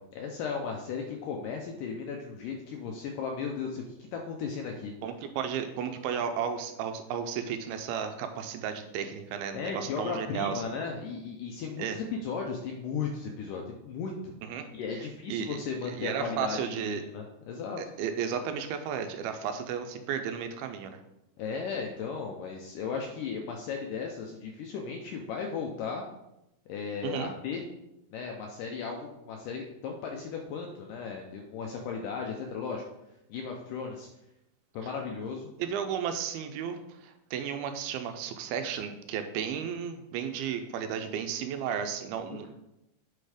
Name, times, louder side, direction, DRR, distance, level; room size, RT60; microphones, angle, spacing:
voice 1, 0.1-3.8 4.1-4.9 9.5-14.3 14.7-17.8 21.4-26.0 26.7-27.6 28.1-32.8 33.3-34.1 34.7-35.5 42.3-42.5, left 5 dB, 80° left, 1 dB, 1.9 m, -36 dB
voice 2, 5.0-10.6 11.8-12.0 14.4-14.7 15.3-17.0 17.8-21.0 27.0-27.3 35.6-42.5, right 8 dB, 80° right, 7 dB, 2.4 m, -34 dB
8.2 x 4.3 x 4.9 m, 0.89 s
omnidirectional pair, 4.5 m